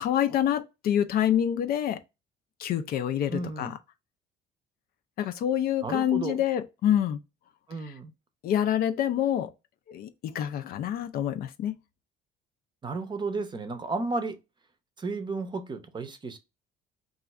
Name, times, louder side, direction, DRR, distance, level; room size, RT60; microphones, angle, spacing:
voice 1, 0.0-2.0 2.6-3.7 5.2-7.2 8.4-9.5 9.9-11.8, left 10 dB, 60° left, 0.4 m, -27 dB
voice 2, 3.3-3.7 5.8-6.4 7.7-8.1 12.8-14.4 15.0-16.4, right 3 dB, 25° right, 0.6 m, -33 dB
2.5 x 2.3 x 4.1 m
cardioid pair, 110°, 17 cm